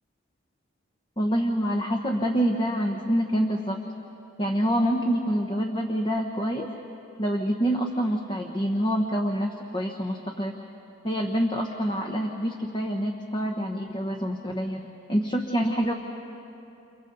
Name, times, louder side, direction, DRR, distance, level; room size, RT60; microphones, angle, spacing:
voice 1, 1.2-3.8 4.4-6.7 7.2-10.5 11.0-15.9, equal, 25° left, 1 dB, 1.1 m, -26 dB
29.5 x 29.5 x 4.0 m, 2.9 s
head